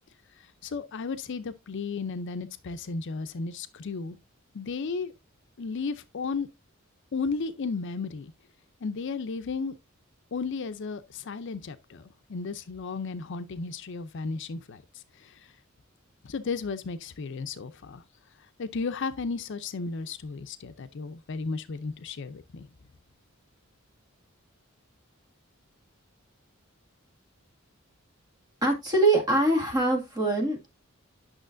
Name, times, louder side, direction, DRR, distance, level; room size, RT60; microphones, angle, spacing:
voice 1, 0.4-4.2 4.5-5.1 5.6-6.5 7.1-8.3 8.8-9.8 10.3-15.5 16.2-18.0 18.6-22.7, left 4 dB, 60° left, 0.5 m, -34 dB
voice 2, 28.6-30.7, right 2 dB, 20° right, 2.0 m, -23 dB
8.9 x 6.2 x 2.5 m
head